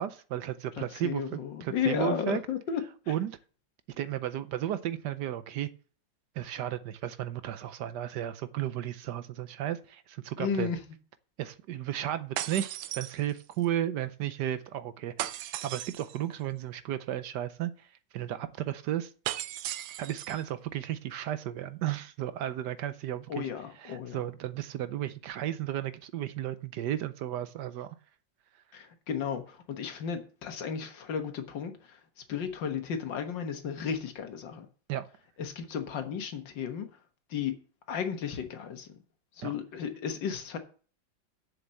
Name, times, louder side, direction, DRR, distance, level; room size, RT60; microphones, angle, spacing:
voice 1, 0.0-2.4 3.1-3.4 4.0-5.7 6.4-10.7 11.4-17.9 18.1-19.1 20.0-23.5 23.8-28.0 34.9-35.1 39.4-39.5, right 11 dB, 70° right, 1.2 m, -34 dB
voice 2, 0.8-2.8 3.1-3.2 10.4-10.8 23.3-24.3 28.7-32.0 32.3-34.7 35.4-36.9 37.3-37.5 37.9-38.9 39.4-40.6, left 7 dB, 75° left, 2.0 m, -34 dB
sound 1, 12.4-13.7 15.2-16.2 19.3-20.4, right 13 dB, 90° right, 1.4 m, -36 dB
7.0 x 7.0 x 7.5 m
omnidirectional pair, 2.0 m